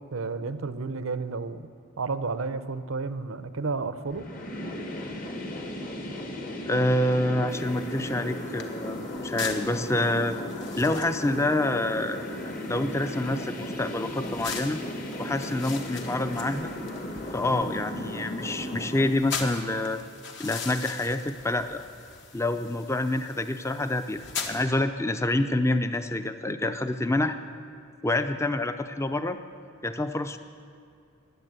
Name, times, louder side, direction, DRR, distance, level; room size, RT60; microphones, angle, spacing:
voice 1, 0.0-1.7 2.0-4.3, right 4 dB, 80° right, 12 dB, 0.7 m, -31 dB
sound 1, 4.1-19.1, left 1 dB, 40° left, 1.3 m, -36 dB
voice 2, 6.7-10.4 10.8-12.3 12.7-14.8 15.2-16.7 17.3-20.0 20.4-21.8 22.3-27.4 28.0-29.4 29.8-30.4, left 1 dB, 15° left, 9 dB, 0.5 m, -27 dB
sound 2, 7.5-24.6, left 5 dB, 55° left, 1.3 m, -41 dB
15.0 x 10.0 x 8.1 m, 2.4 s
head